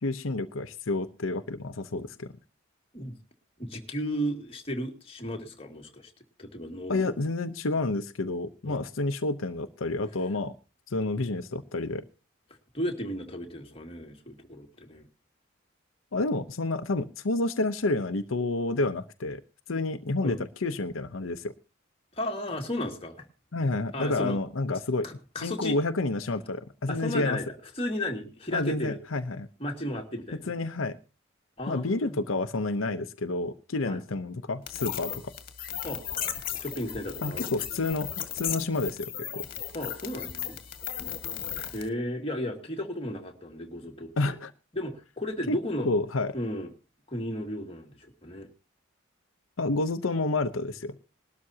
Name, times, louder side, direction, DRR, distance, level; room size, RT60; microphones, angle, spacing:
voice 1, 0.0-2.3 6.9-10.5 10.9-12.0 16.1-19.4 19.7-21.5 23.5-25.1 25.4-27.4 28.5-29.5 30.5-31.0 31.7-35.2 37.2-39.4 44.2-44.5 45.5-45.6 45.8-46.3 49.6-50.9, left 2 dB, 85° left, 9 dB, 0.8 m, -29 dB
voice 2, 3.6-6.1 6.4-7.1 8.6-8.8 12.7-15.1 20.2-20.4 22.1-23.3 23.9-24.4 25.0-25.8 26.9-29.0 29.6-30.5 31.6-32.1 33.8-34.0 35.8-36.0 36.5-37.5 39.7-40.6 41.7-44.4 44.7-45.9 46.3-46.7 47.1-48.5, left 1 dB, 30° left, 2 dB, 2.2 m, -34 dB
sound 1, 34.7-41.9, left 10 dB, 45° left, 1.9 m, -36 dB
20.0 x 12.5 x 2.8 m, 0.31 s
head